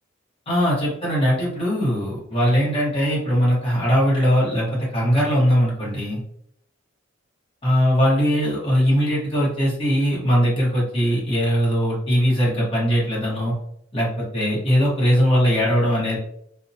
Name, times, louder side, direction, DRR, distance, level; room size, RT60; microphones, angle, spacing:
voice 1, 0.5-6.2 7.6-13.5 13.9-16.2, equal, 30° left, -5 dB, 1.0 m, -20 dB
2.7 x 2.1 x 2.6 m, 0.71 s
head